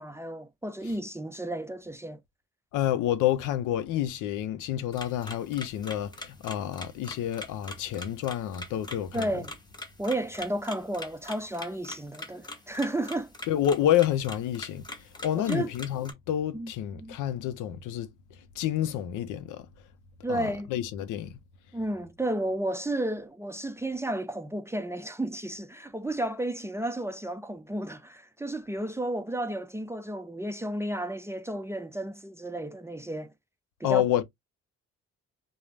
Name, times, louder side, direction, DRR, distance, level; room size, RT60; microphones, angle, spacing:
voice 1, 0.0-2.2 9.1-9.5 10.0-13.3 15.4-15.7 16.5-17.2 20.2-20.7 21.7-33.3 33.8-34.0, right 1 dB, 10° right, 0.3 m, -32 dB
voice 2, 2.7-9.4 13.5-18.1 18.6-19.7 20.3-21.4 33.8-34.2, left 11 dB, 85° left, 0.5 m, -29 dB
sound 1, 4.9-16.1, left 2 dB, 15° left, 0.8 m, -43 dB
2.4 x 2.0 x 3.1 m
cardioid pair, 90°, 30 cm